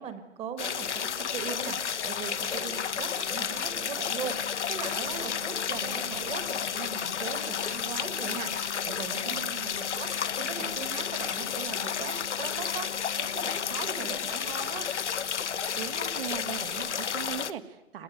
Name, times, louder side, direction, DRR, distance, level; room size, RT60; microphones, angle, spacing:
voice 1, 0.0-14.9, right 7 dB, 15° right, 10 dB, 1.8 m, -40 dB
sound 1, 0.6-17.5, left 7 dB, 75° left, 1.2 m, -31 dB
voice 2, 9.2-9.9 15.7-18.0, right 9 dB, 50° right, 9 dB, 2.2 m, -39 dB
27.0 x 20.5 x 9.3 m, 0.98 s
hypercardioid pair, 140°, 35 cm